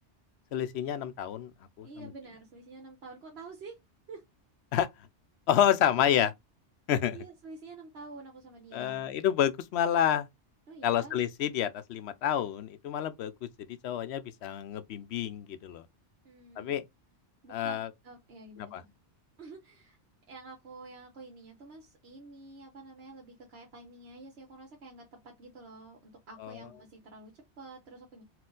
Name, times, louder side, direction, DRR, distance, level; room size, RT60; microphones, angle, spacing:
voice 1, 0.5-1.5 1.8-2.1 4.7-4.9 5.5-6.3 6.9-7.2 8.7-10.3 10.8-13.5 13.8-15.8 16.6-16.8 17.5-17.9 18.7-18.8 26.4-26.6, left 10 dB, 70° left, 0.8 m, -29 dB
voice 2, 1.8-3.8 4.1-4.2 7.1-9.1 10.7-11.2 16.2-16.8 17.4-18.9 19.4-20.0 20.3-28.2, right 3 dB, 65° right, 1.1 m, -48 dB
4.3 x 2.3 x 3.8 m
omnidirectional pair, 1.2 m